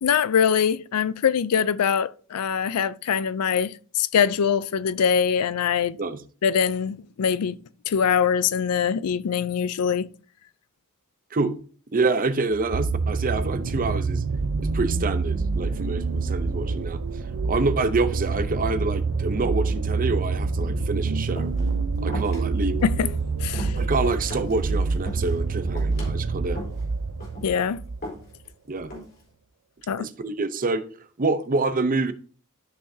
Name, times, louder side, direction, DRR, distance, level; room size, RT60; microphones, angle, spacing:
voice 1, 0.0-6.0 6.4-7.6 7.9-10.1 22.8-23.1 23.4-23.8 27.4-27.8 29.9-30.1, left 7 dB, 80° left, 0.4 m, -23 dB
voice 2, 11.9-14.2 14.7-17.0 17.4-21.5 22.0-22.8 23.7-26.6 28.7-28.9 30.0-30.8 31.2-32.1, right 3 dB, 40° right, 0.7 m, -26 dB
sound 1, 12.5-28.1 28.9-29.0, right 4 dB, 80° right, 0.6 m, -27 dB
sound 2, 21.4-21.7 22.1-22.4 22.8-23.1 23.4-24.6 24.9-25.4 25.8-26.1 26.6-26.8 27.2-27.6 28.0-28.5 28.9-29.3, equal, 45° left, 4.0 m, -38 dB
13.0 x 5.7 x 2.7 m
head